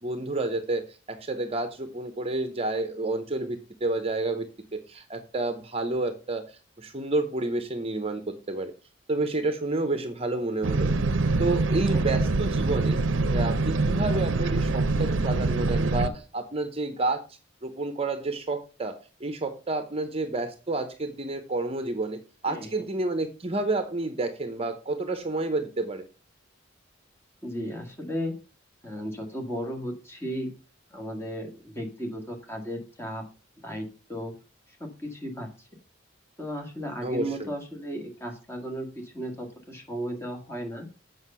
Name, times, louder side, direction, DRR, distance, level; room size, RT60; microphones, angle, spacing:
voice 1, 0.0-8.7 9.1-10.9 11.4-13.0 13.3-17.2 17.6-26.1 37.0-37.5, right 2 dB, 30° right, 8 dB, 0.8 m, -30 dB
sound 1, 10.6-16.1, right 3 dB, 85° right, 0.7 m, -24 dB
voice 2, 27.4-28.3 28.8-30.5 30.9-33.2 33.6-34.3 34.7-35.7 36.4-40.9, equal, 15° left, 3 dB, 1.8 m, -35 dB
8.0 x 5.4 x 5.5 m, 0.33 s
head